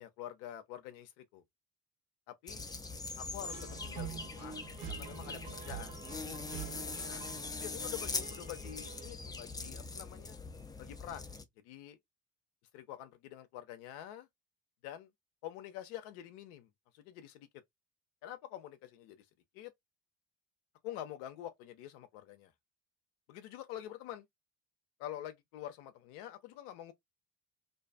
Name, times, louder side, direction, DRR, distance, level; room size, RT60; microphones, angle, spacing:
voice 1, 0.0-1.4 2.3-2.6 3.2-5.9 7.1-10.4 10.8-11.3 11.6-12.0 12.7-14.3 14.8-15.1 15.4-16.7 16.9-17.5 18.2-19.3 19.5-19.7 20.8-22.5 23.3-24.2 25.0-26.9, left 12 dB, 65° left, 0.6 m, -47 dB
sound 1, 2.5-11.4, left 3 dB, 10° left, 0.4 m, -42 dB
sound 2, 3.4-9.1, right 9 dB, 70° right, 1.4 m, -47 dB
2.5 x 2.3 x 2.3 m
figure-of-eight pair, 50°, 47 cm